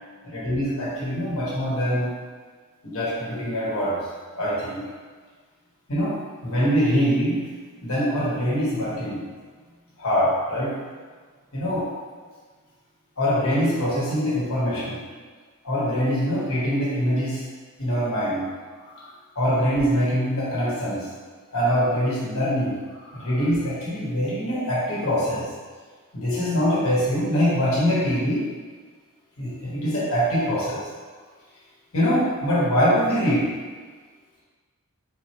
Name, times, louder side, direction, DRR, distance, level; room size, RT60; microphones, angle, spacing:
voice 1, 0.2-2.1 2.8-4.0 4.4-4.8 5.9-7.4 7.8-9.3 10.0-10.7 11.5-11.9 13.2-15.0 15.6-17.4 17.8-18.5 19.0-19.1 19.3-21.1 21.5-22.7 23.1-25.5 26.1-28.4 29.4-30.8 31.9-33.5, equal, 65° left, -7 dB, 1.4 m, -23 dB
4.1 x 3.2 x 2.9 m, 1.5 s
head